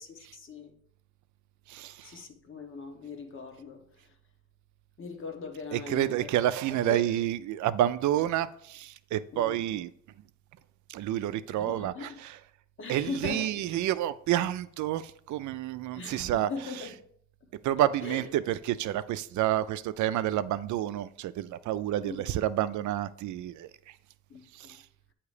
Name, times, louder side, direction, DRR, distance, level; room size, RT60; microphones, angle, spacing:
voice 1, 0.3-0.7 2.0-3.8 5.0-6.3 6.8-7.0 9.3-9.6 11.6-12.2 12.8-13.8 15.9-16.9 17.4-17.5 18.0-18.2 22.0-22.3 24.3-24.8, left 4 dB, 45° left, 1.0 m, -40 dB
voice 2, 1.7-2.2 5.7-9.9 10.9-12.4 12.9-17.0 17.6-24.0 24.5-24.8, right 12 dB, 75° right, 0.4 m, -29 dB
8.1 x 2.9 x 4.9 m
cardioid pair, 90°, 30 cm